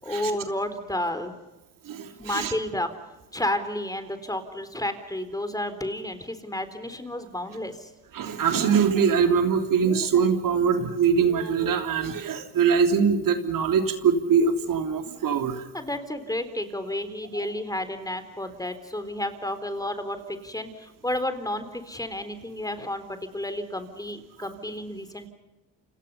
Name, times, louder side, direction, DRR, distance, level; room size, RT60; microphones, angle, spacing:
voice 1, 0.0-1.3 2.2-2.9 3.3-7.9 15.7-25.3, left 1 dB, 10° left, 10 dB, 3.9 m, -31 dB
voice 2, 1.8-2.5 8.1-15.6, right 6 dB, 55° right, 6 dB, 3.2 m, -23 dB
30.0 x 26.5 x 5.6 m, 1.0 s
supercardioid pair, 75°, 38 cm